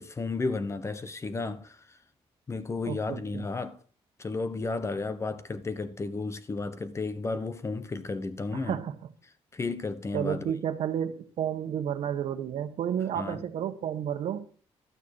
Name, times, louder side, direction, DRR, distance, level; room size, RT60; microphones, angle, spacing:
voice 1, 0.0-2.0 2.5-3.8 4.2-8.8 9.5-10.5 13.2-13.4, left 3 dB, 25° left, 1.0 m, -33 dB
voice 2, 2.8-3.4 8.5-8.9 10.1-14.5, right 9 dB, 70° right, 1.3 m, -31 dB
12.5 x 8.8 x 4.8 m
cardioid pair, 120°, 11 cm